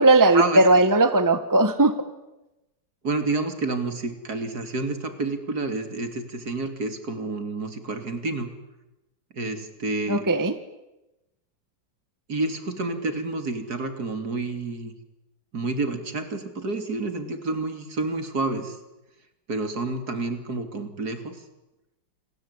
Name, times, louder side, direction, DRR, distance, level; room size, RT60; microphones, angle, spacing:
voice 1, 0.0-1.9 10.1-10.5, right 2 dB, 10° right, 10 dB, 1.4 m, -18 dB
voice 2, 3.0-8.5 9.3-10.2 12.3-14.9 15.5-18.8 19.5-21.4, right 3 dB, 55° right, 8 dB, 3.3 m, -29 dB
28.5 x 21.0 x 9.8 m, 0.98 s
omnidirectional pair, 2.1 m